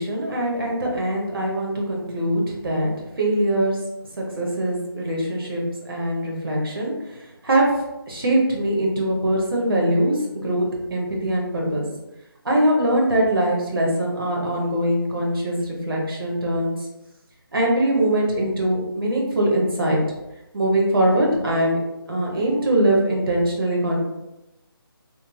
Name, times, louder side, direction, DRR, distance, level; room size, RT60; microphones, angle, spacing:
voice 1, 0.0-2.9 3.2-3.8 4.2-6.9 7.4-7.7 8.1-11.8 12.4-16.7 17.5-20.0 20.5-21.8 22.1-24.0, right 1 dB, 65° right, -2 dB, 1.0 m, -22 dB
3.0 x 2.5 x 2.2 m, 0.96 s
figure-of-eight pair, 165°, 13 cm